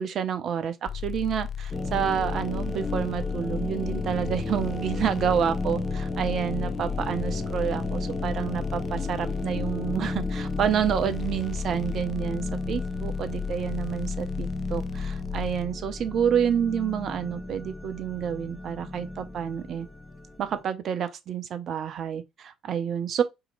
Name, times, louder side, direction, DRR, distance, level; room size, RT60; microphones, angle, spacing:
voice 1, 0.0-19.9 20.4-23.2, right 8 dB, 55° right, 0.6 m, -29 dB
sound 1, 0.9-15.6, left 8 dB, 45° left, 0.3 m, -35 dB
sound 2, 1.7-20.6, left 2 dB, 15° left, 0.7 m, -34 dB
2.8 x 2.8 x 3.9 m
hypercardioid pair, 55°, 0 cm